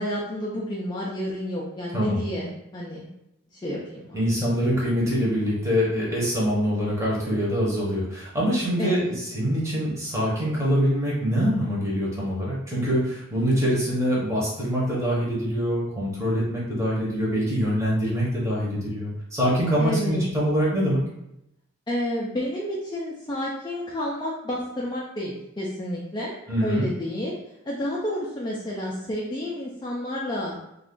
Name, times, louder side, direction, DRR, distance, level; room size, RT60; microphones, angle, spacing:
voice 1, 0.0-3.1 3.5-4.2 8.8-9.0 19.8-20.2 21.9-26.3 26.6-27.4 27.6-30.6, left 1 dB, 20° left, -5 dB, 0.4 m, -30 dB
voice 2, 4.1-21.0 26.5-26.9, equal, 15° right, -6 dB, 0.8 m, -24 dB
2.4 x 2.3 x 3.6 m, 0.85 s
head